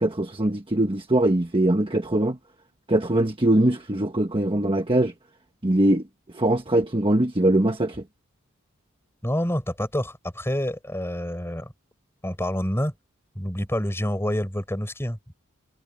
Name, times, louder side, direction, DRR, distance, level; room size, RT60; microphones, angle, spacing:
voice 1, 0.0-2.4 2.9-5.1 5.6-6.0 6.3-8.0, right 1 dB, 25° right, 1.3 m, -22 dB
voice 2, 9.2-11.7 12.2-12.9 13.3-15.2, equal, 10° left, 6.6 m, -27 dB
head